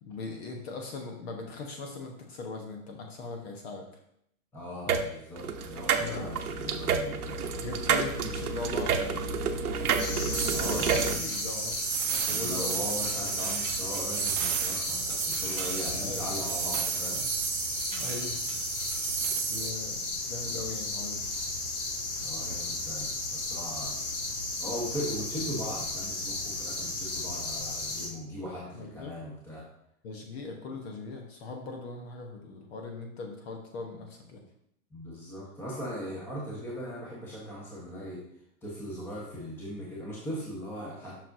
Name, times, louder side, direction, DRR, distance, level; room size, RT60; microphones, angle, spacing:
voice 1, 0.0-3.8 4.9-5.0 5.9-6.3 7.3-9.0 10.6-11.8 12.2-13.3 15.9-16.3 17.9-18.4 19.3-21.2 27.8-27.9 28.7-29.1 30.0-34.4, left 3 dB, 45° left, 2 dB, 1.1 m, -40 dB
voice 2, 4.5-7.4 10.5-11.3 12.3-17.2 22.2-24.0 24.6-29.7 34.9-38.2 38.6-41.1, equal, 5° left, -5 dB, 1.2 m, -39 dB
sound 1, 4.9-5.0 5.4-11.1, right 5 dB, 85° right, 0.9 m, -29 dB
sound 2, 9.9-19.7, right 11 dB, 60° right, 0.7 m, -33 dB
sound 3, 10.0-28.1, left 2 dB, 80° left, 2.0 m, -34 dB
7.3 x 6.0 x 2.7 m, 0.74 s
hypercardioid pair, 140°, 44 cm